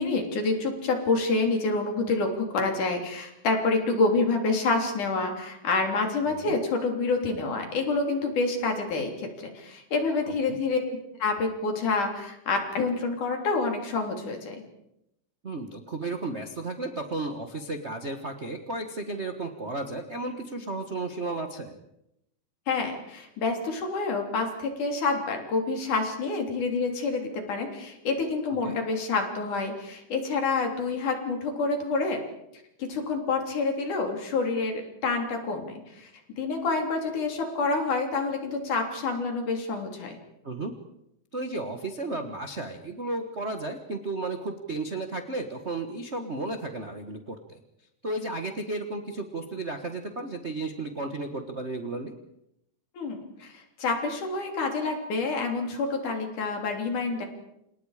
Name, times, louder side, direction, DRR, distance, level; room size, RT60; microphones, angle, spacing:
voice 1, 0.0-14.6 22.7-32.2 32.8-36.1 36.4-40.2 52.9-57.3, left 3 dB, 65° left, 3 dB, 4.7 m, -28 dB
voice 2, 6.3-6.6 10.5-10.6 15.4-21.8 28.6-28.8 40.4-40.7 41.3-47.6 48.0-52.1, right 2 dB, 60° right, 4 dB, 0.6 m, -33 dB
29.0 x 27.5 x 5.0 m, 0.83 s
omnidirectional pair, 3.9 m